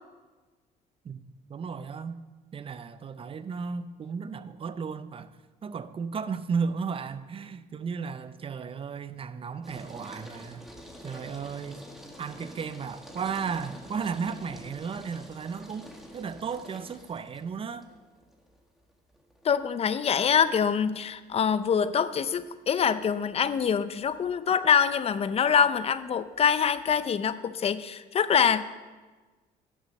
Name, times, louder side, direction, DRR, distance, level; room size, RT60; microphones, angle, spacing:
voice 1, 1.5-2.2 2.5-5.3 5.6-10.7 11.0-11.8 12.2-15.9 16.1-17.9, right 5 dB, 35° right, 0.6 m, -34 dB
sound 1, 9.6-27.1, equal, ahead, 1.6 m, -49 dB
voice 2, 19.4-28.6, left 7 dB, 35° left, 0.6 m, -25 dB
11.0 x 6.8 x 6.3 m
cardioid pair, 110°, 17 cm